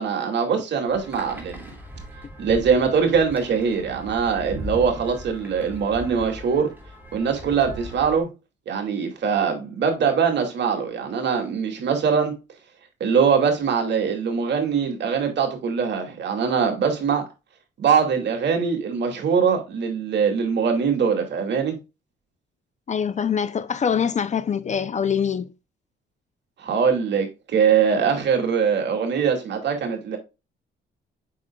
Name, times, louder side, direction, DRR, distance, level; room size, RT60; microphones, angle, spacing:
voice 1, 0.0-1.7 2.4-6.7 7.1-8.3 8.7-12.3 13.0-17.3 17.8-21.7 26.6-30.2, right 6 dB, 60° right, 2.5 m, -22 dB
sound 1, 0.9-8.2, equal, 10° right, 2.3 m, -39 dB
voice 2, 22.9-25.5, left 7 dB, 35° left, 0.6 m, -24 dB
7.7 x 5.9 x 2.3 m
cardioid pair, 90°, 20 cm